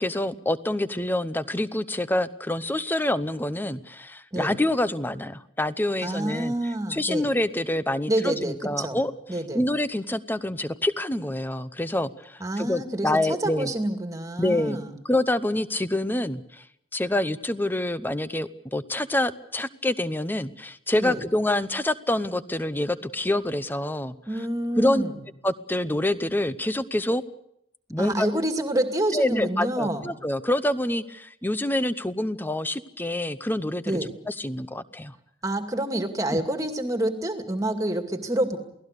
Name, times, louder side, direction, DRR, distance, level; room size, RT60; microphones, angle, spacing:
voice 1, 0.0-6.5 6.9-9.1 9.5-13.7 14.4-14.8 15.1-16.6 16.9-24.1 24.8-25.0 25.4-27.2 27.9-28.3 29.1-34.0 34.3-35.1 36.3-36.4, left 1 dB, 10° left, 14 dB, 0.8 m, -26 dB
voice 2, 6.0-7.3 8.1-9.0 9.3-9.6 12.4-15.0 21.0-21.2 24.3-25.2 28.0-30.1 33.9-34.1 35.4-38.6, right 1 dB, 20° right, 5 dB, 2.2 m, -27 dB
28.5 x 18.5 x 6.7 m, 0.75 s
head